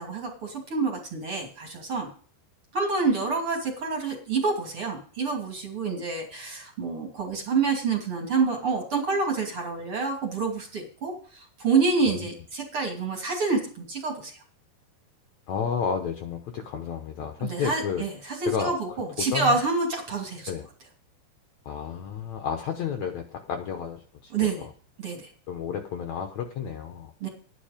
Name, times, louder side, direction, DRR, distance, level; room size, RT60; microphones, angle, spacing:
voice 1, 0.0-2.1 2.7-14.3 17.4-20.5 24.3-24.6 25.0-25.3 27.2-27.3, right 4 dB, 35° right, 1 dB, 2.9 m, -27 dB
voice 2, 15.5-18.0 18.4-18.7 19.2-19.6 20.5-20.7 21.6-24.3 25.5-27.1, left 7 dB, 85° left, 5 dB, 1.6 m, -31 dB
11.5 x 10.5 x 5.1 m, 0.43 s
omnidirectional pair, 4.9 m